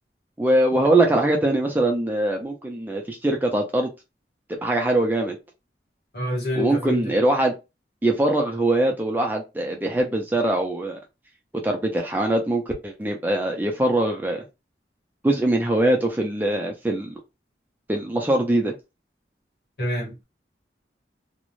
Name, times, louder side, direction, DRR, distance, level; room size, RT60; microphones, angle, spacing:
voice 1, 0.4-3.9 4.6-5.4 6.6-7.5 8.0-11.0 11.6-14.4 15.2-17.1 17.9-18.7, right 1 dB, 10° right, 0.3 m, -22 dB
voice 2, 6.1-7.1 19.8-20.2, left 1 dB, 60° left, 1.4 m, -27 dB
2.5 x 2.0 x 3.0 m
head